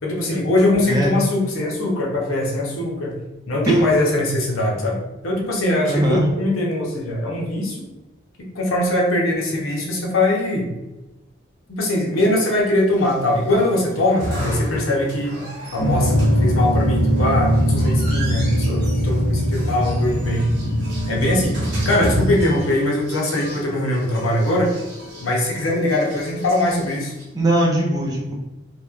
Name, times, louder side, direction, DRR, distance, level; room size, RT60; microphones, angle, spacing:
voice 1, 0.0-3.1 3.5-5.0 5.2-7.8 8.4-10.7 11.7-20.5 21.1-21.6 21.8-24.7 25.2-27.1, left 1 dB, 90° left, -2 dB, 0.7 m, -21 dB
voice 2, 0.8-1.2 3.7-3.8 5.9-6.3 27.3-28.3, right 1 dB, 20° right, -3 dB, 0.4 m, -20 dB
sound 1, 12.9-27.2, equal, 55° right, 1.0 m, -33 dB
sound 2, 15.8-22.4, equal, 55° left, 0.5 m, -21 dB
2.9 x 2.2 x 2.3 m, 1.1 s
head